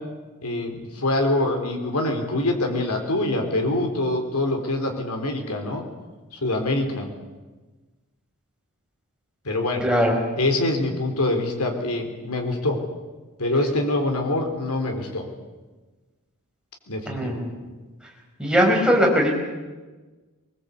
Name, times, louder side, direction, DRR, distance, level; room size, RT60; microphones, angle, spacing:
voice 1, 0.4-5.9 6.3-7.1 9.4-9.8 10.4-12.8 13.4-15.3 16.9-17.4, left 2 dB, 85° left, 3 dB, 3.9 m, -25 dB
voice 2, 9.8-10.1 17.1-17.5 18.4-19.4, equal, 5° right, -1 dB, 5.2 m, -20 dB
22.5 x 21.0 x 8.3 m, 1.3 s
head